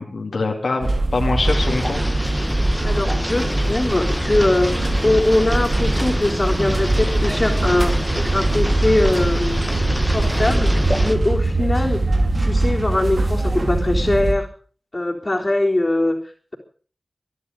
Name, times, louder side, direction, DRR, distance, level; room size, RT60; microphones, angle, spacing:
voice 1, 0.0-2.2, left 3 dB, 85° left, 1 dB, 2.9 m, -24 dB
sound 1, 0.8-14.3, right 2 dB, 60° right, 3.9 m, -22 dB
sound 2, 1.4-11.1, equal, ahead, 1.6 m, -25 dB
voice 2, 2.8-9.6 10.1-12.0 12.4-14.5 14.9-16.2, left 1 dB, 35° left, -4 dB, 4.0 m, -21 dB
24.0 x 11.0 x 5.3 m, 0.43 s
wide cardioid pair, 50°, 0 cm